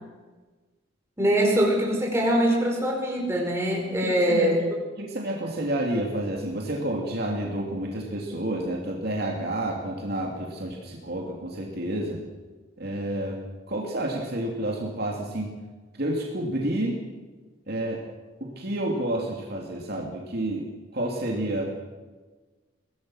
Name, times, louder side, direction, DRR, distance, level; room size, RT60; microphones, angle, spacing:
voice 1, 1.2-4.6, equal, 15° right, -1 dB, 5.1 m, -23 dB
voice 2, 4.0-4.6 5.0-12.2 12.8-13.4 13.7-15.5 15.9-17.0 17.7-18.0 18.4-21.6, right 1 dB, 50° right, -1 dB, 3.0 m, -30 dB
23.5 x 17.0 x 6.4 m, 1.3 s
head